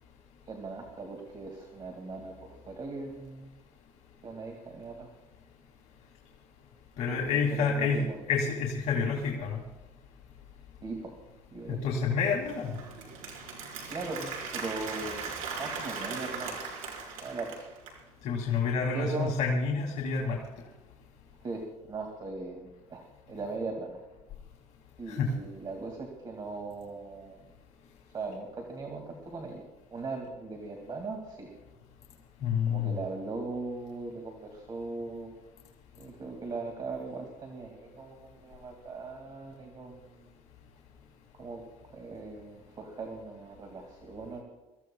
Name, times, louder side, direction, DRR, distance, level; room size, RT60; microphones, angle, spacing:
voice 1, 0.5-3.5 4.2-5.1 7.1-7.2 7.5-8.2 10.8-11.2 11.5-11.8 13.9-15.3 15.6-16.6 17.2-17.6 18.9-19.4 21.4-24.0 25.0-27.5 28.1-31.5 32.7-35.3 36.0-40.1 41.4-41.6 41.9-44.4, right 3 dB, 35° right, 2 dB, 2.3 m, -39 dB
voice 2, 7.0-9.6 11.7-12.7 18.2-20.4 25.1-25.3 32.4-33.0, left 5 dB, 60° left, -2 dB, 2.5 m, -28 dB
Applause, 12.2-18.0, right 5 dB, 75° right, 4.8 m, -39 dB
25.0 x 15.0 x 2.3 m, 1.1 s
cardioid pair, 125°, 13 cm